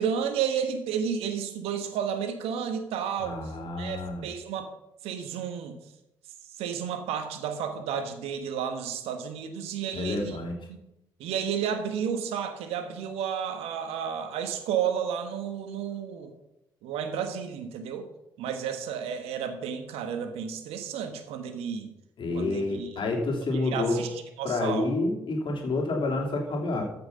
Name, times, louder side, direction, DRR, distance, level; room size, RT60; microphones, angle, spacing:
voice 1, 0.0-3.5 3.8-4.7 5.0-5.8 6.6-10.4 10.7-10.8 11.2-16.3 16.8-18.1 18.4-21.9 22.3-23.0 23.5-24.9, right 7 dB, 70° right, 8 dB, 1.3 m, -32 dB
voice 2, 3.2-4.2 9.9-10.5 22.2-24.0 24.4-26.8, left 2 dB, 50° left, 1 dB, 3.0 m, -29 dB
14.0 x 6.0 x 5.7 m, 0.87 s
hypercardioid pair, 45°, 11 cm